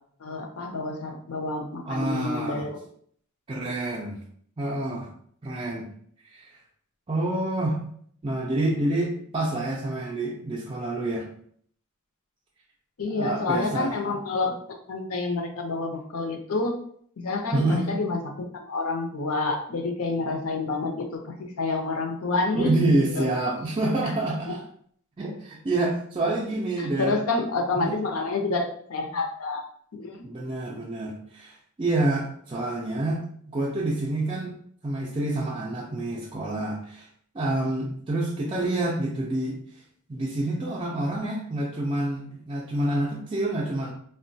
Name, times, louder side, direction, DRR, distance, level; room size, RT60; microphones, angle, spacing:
voice 1, 0.2-2.8 3.6-3.7 13.0-14.6 14.9-16.8 17.2-22.7 23.2-23.3 26.8-29.6 29.9-30.3, left 3 dB, 70° left, 3 dB, 0.6 m, -28 dB
voice 2, 1.9-2.7 3.5-4.2 4.6-5.1 5.4-5.9 6.2-6.5 7.1-7.8 8.2-11.3 13.1-14.0 17.5-17.9 22.5-24.6 25.2-27.2 27.8-28.0 30.2-33.2 33.5-34.5 34.8-37.1 37.3-39.6 40.1-43.9, right 2 dB, 25° right, -3 dB, 0.4 m, -27 dB
3.6 x 2.1 x 2.6 m, 0.62 s
head